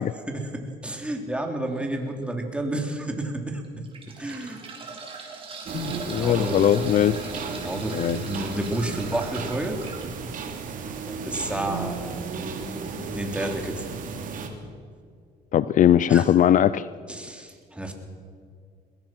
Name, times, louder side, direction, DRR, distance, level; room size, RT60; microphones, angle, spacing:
voice 1, 0.3-3.8 4.2-4.6 6.1-6.7 7.6-9.8 11.1-12.1 13.1-13.8 16.1-16.3 17.1-18.0, right 1 dB, 5° right, 2 dB, 3.3 m, -30 dB
sound 1, 1.7-2.0 2.6-2.7 3.6-10.0 11.6-11.8 12.0-12.1, right 4 dB, 35° right, 4.7 m, -40 dB
voice 2, 5.7-7.3 7.9-8.2 15.5-16.9, left 10 dB, 50° left, 16 dB, 0.5 m, -20 dB
sound 2, 5.7-14.5, right 5 dB, 50° right, 2.9 m, -34 dB
22.0 x 21.0 x 6.1 m, 2.1 s
cardioid pair, 110°, 17 cm